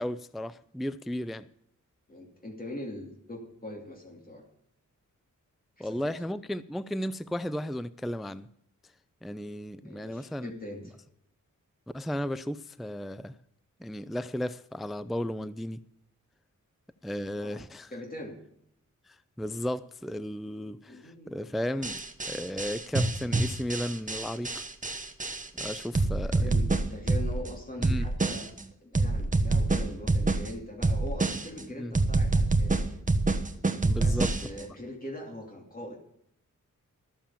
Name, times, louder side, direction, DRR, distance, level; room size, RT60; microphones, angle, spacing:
voice 1, 0.0-1.5 5.8-8.5 9.2-10.5 11.9-13.3 13.8-15.8 17.0-17.9 19.4-22.0 22.3-24.6 25.6-26.6 27.8-28.1 31.8-31.9 33.8-34.3, left 1 dB, ahead, 0.4 m, -34 dB
voice 2, 2.1-4.4 5.8-6.2 9.8-11.0 17.4-17.6 17.9-18.4 20.9-21.5 26.2-28.5 28.8-33.0 34.0-36.0, left 1 dB, 30° left, 2.7 m, -42 dB
sound 1, 21.8-27.5 27.8-28.6 29.0-30.5 30.8-31.6 32.0-34.6, right 3 dB, 25° right, 1.1 m, -26 dB
13.5 x 7.1 x 7.2 m
wide cardioid pair, 105°, 31 cm